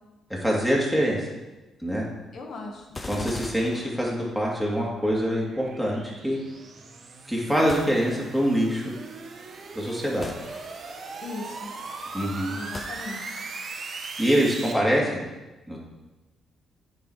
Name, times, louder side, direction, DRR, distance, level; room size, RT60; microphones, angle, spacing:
voice 1, 0.3-1.3 1.8-2.0 3.1-6.4 7.3-8.9 9.7-10.3 12.1-12.6 14.2-15.2 15.7-15.8, equal, 5° left, -4 dB, 2.6 m, -24 dB
voice 2, 2.3-3.0 11.2-11.7 12.5-13.4, left 3 dB, 60° left, 2 dB, 1.6 m, -38 dB
sound 1, 2.9-4.6 7.7-8.6 10.2-11.1 12.7-13.6, left 2 dB, 25° left, 0.7 m, -41 dB
sound 2, 4.3-14.7, right 4 dB, 50° right, 1.1 m, -40 dB
9.2 x 5.2 x 4.9 m, 1.1 s
cardioid pair, 90°, 0 cm